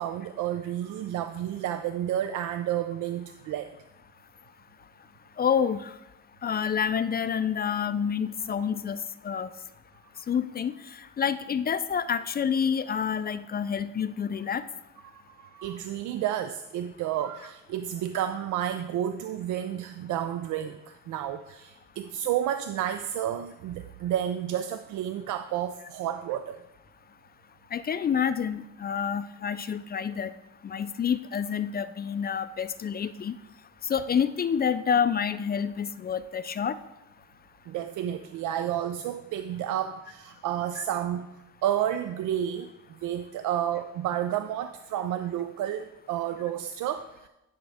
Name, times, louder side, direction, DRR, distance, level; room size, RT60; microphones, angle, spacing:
voice 1, 0.0-3.7 15.1-26.6 37.7-41.3 41.6-42.7 43.0-47.3, right 11 dB, 80° right, 9 dB, 0.5 m, -31 dB
voice 2, 5.4-5.9 6.4-9.5 10.3-10.7 11.2-14.6 27.7-30.3 30.6-33.4 33.8-36.8 40.8-40.9, left 7 dB, 30° left, 14 dB, 0.4 m, -28 dB
10.0 x 5.8 x 3.5 m, 0.95 s
cardioid pair, 90°, 30 cm